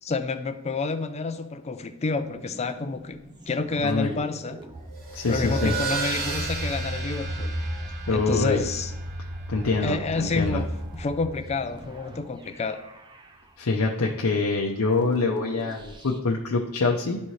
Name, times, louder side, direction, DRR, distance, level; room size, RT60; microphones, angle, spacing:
voice 1, 0.0-3.2 3.5-4.6 5.3-7.5 8.1-8.9 9.8-12.8, left 4 dB, 30° left, 10 dB, 0.4 m, -29 dB
sound 1, 2.1-16.2, right 1 dB, 20° right, 0.6 m, -38 dB
sound 2, 4.9-11.9, right 2 dB, 45° right, 1.0 m, -34 dB
voice 2, 5.1-5.7 8.1-8.6 9.5-10.6 13.6-17.2, left 3 dB, 70° left, -1 dB, 0.7 m, -25 dB
11.5 x 4.2 x 3.2 m, 0.91 s
head